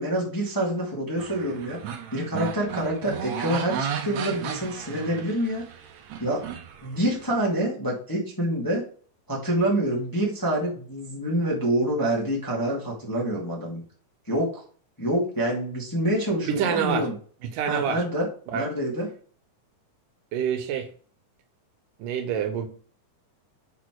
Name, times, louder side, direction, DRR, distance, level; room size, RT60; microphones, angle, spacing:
voice 1, 0.0-1.8 2.1-5.6 6.2-6.4 6.8-8.8 9.3-13.8 14.3-14.6 15.0-17.1 17.7-18.3 18.5-19.1, right 1 dB, 10° left, -3 dB, 1.3 m, -26 dB
sound 1, 1.2-7.2, right 7 dB, 65° right, 2.0 m, -35 dB
voice 2, 16.5-17.1 17.4-18.0 18.5-18.7 20.3-20.9 22.0-22.7, right 8 dB, 85° right, 8 dB, 2.5 m, -26 dB
6.8 x 4.3 x 4.7 m, 0.43 s
omnidirectional pair, 3.7 m